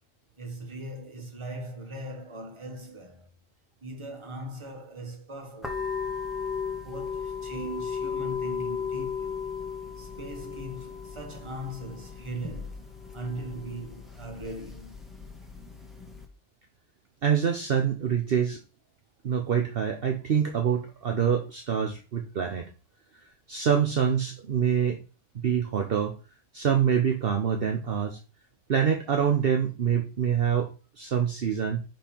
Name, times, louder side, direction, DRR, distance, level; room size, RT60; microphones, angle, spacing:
voice 1, 0.4-3.3 3.8-5.9 6.7-9.4 10.0-12.8 13.1-15.0, right 1 dB, 25° right, 1.3 m, -39 dB
sound 1, 5.6-16.2, left 6 dB, ahead, 1.1 m, -36 dB
voice 2, 17.2-18.6 19.2-22.7 23.5-25.0 25.4-26.1 26.5-28.2 28.7-31.8, right 8 dB, 55° right, 1.0 m, -25 dB
5.5 x 5.3 x 4.3 m
omnidirectional pair, 1.3 m